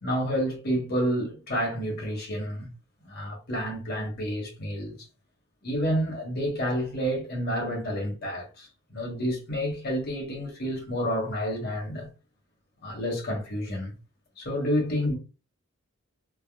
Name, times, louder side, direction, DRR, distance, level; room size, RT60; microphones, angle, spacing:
voice 1, 0.0-2.7 3.0-4.9 5.6-8.7 8.9-12.1 12.8-13.9 14.4-15.2, equal, 45° left, 1.1 m, -29 dB
3.4 x 2.0 x 2.3 m
head